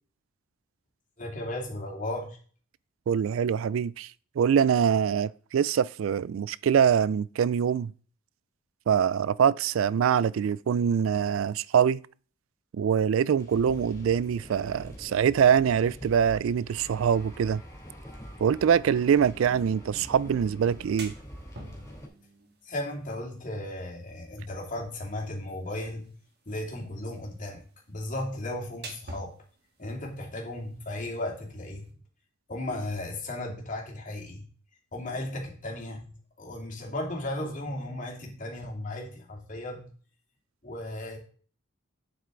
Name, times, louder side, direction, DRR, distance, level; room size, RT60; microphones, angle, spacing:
voice 1, 1.2-2.4 22.6-26.1 26.5-29.3 29.8-31.9 32.5-34.4 34.9-36.1 36.4-39.9 40.6-41.2, left 1 dB, 40° left, 2.6 m, -35 dB
voice 2, 3.1-4.1 4.4-7.9 8.9-12.0 12.7-17.6 18.4-21.1, right 7 dB, 75° right, 0.3 m, -24 dB
sound 1, 13.4-22.1, equal, 15° left, 3.2 m, -45 dB
sound 2, 20.6-31.9, right 2 dB, 55° right, 2.0 m, -50 dB
8.9 x 7.9 x 3.8 m
head